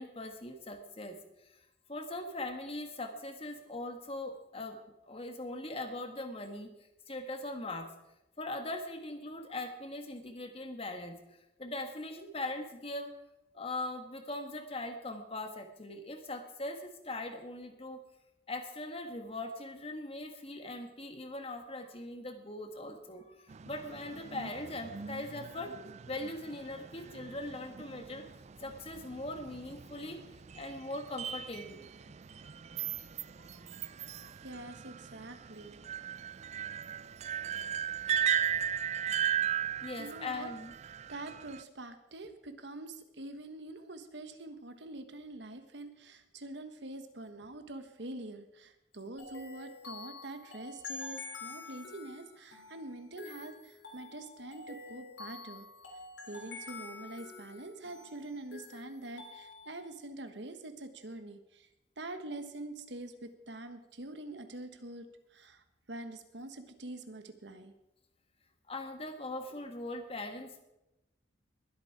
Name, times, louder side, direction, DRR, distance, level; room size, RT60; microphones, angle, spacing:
voice 1, 0.0-1.6 1.9-4.8 5.1-6.7 7.1-7.9 8.4-11.2 11.6-13.1 13.5-18.0 18.5-25.7 26.1-28.2 28.6-30.2 30.5-32.1 33.4-33.5 33.8-34.3 39.8-40.7 68.7-70.6, left 2 dB, 30° left, 6 dB, 1.6 m, -41 dB
sound 1, 23.5-41.6, right 9 dB, 35° right, 0.4 m, -37 dB
voice 2, 34.4-35.8 40.0-40.5 41.1-55.7 56.3-61.7 62.0-65.1 65.3-67.7, right 2 dB, 65° right, 8 dB, 1.3 m, -45 dB
sound 2, 49.2-59.9, left 3 dB, 75° left, 3.8 m, -47 dB
21.5 x 8.2 x 4.8 m, 0.93 s
head